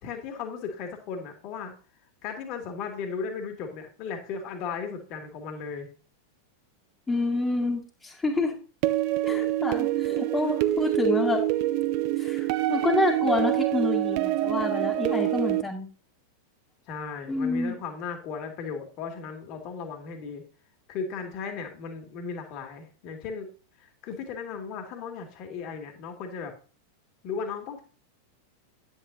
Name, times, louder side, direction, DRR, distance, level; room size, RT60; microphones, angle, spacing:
voice 1, 0.0-1.7 2.2-5.9 16.9-20.4 20.9-23.5 23.8-26.5 27.2-27.8, left 5 dB, 40° left, 4 dB, 2.4 m, -36 dB
voice 2, 7.1-8.6 9.2-11.4 12.2-15.9 17.3-17.8, left 3 dB, 15° left, -4 dB, 2.0 m, -28 dB
sound 1, 8.8-15.6, right 15 dB, 45° right, 0.5 m, -26 dB
10.0 x 9.0 x 2.8 m, 0.38 s
figure-of-eight pair, 90°, 0 cm